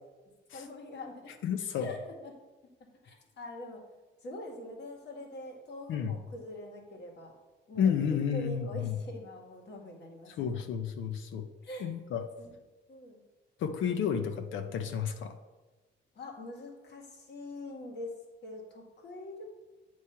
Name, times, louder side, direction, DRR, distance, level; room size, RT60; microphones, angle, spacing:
voice 1, 0.5-1.3 1.8-2.3 3.0-3.8 4.2-7.3 7.7-7.9 8.3-10.6 11.6-11.9 12.4-12.5 12.9-13.2 16.2-18.1 18.4-19.4, left 1 dB, 60° left, 0 dB, 1.7 m, -44 dB
voice 2, 1.4-1.9 5.9-6.2 7.8-9.0 10.3-11.4 11.8-12.2 13.6-15.3, left 7 dB, 75° left, 6 dB, 0.6 m, -31 dB
8.4 x 3.1 x 5.6 m, 1.2 s
cardioid pair, 90°, 20 cm